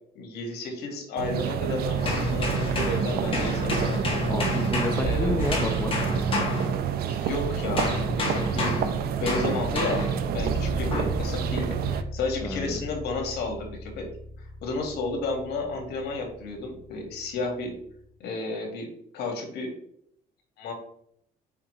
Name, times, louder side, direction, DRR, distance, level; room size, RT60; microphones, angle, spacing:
voice 1, 0.2-4.0 5.0-5.4 7.0-8.7 9.2-14.1 14.4-17.7 18.2-18.9 19.1-19.7 20.6-20.7, left 3 dB, 75° left, 2 dB, 2.0 m, -32 dB
sound 1, 1.2-12.0, right 8 dB, 65° right, 0.6 m, -29 dB
sound 2, 2.0-7.3 7.8-10.3 10.9-11.2, left 1 dB, 30° left, 2.0 m, -29 dB
voice 2, 4.3-5.9 12.4-12.8, left 2 dB, 15° left, 3 dB, 0.8 m, -30 dB
sound 3, 10.3-18.1, left 1 dB, 60° left, 1.4 m, -37 dB
5.7 x 5.3 x 3.2 m, 0.67 s
cardioid pair, 110°, 17 cm